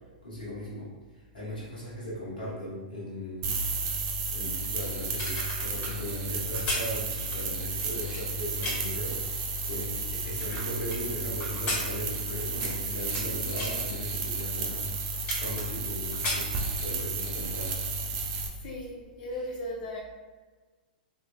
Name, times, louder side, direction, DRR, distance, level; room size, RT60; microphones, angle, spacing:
voice 1, 0.2-0.9 1.3-3.6 4.3-5.3 5.6-9.2 9.6-14.9 15.4-17.8, left 1 dB, 85° left, -7 dB, 1.1 m, -38 dB
sound 1, 3.4-18.5, right 3 dB, 45° right, 0.6 m, -32 dB
sound 2, 5.0-9.0 9.6-11.0 11.4-13.3 13.5-13.8 14.4-14.5 14.8-17.1 17.5-17.7, left 2 dB, 30° left, 1.4 m, -35 dB
voice 2, 18.5-20.0, left 1 dB, 55° left, -3 dB, 0.6 m, -37 dB
3.1 x 3.1 x 2.3 m, 1.3 s
hypercardioid pair, 110°, 5 cm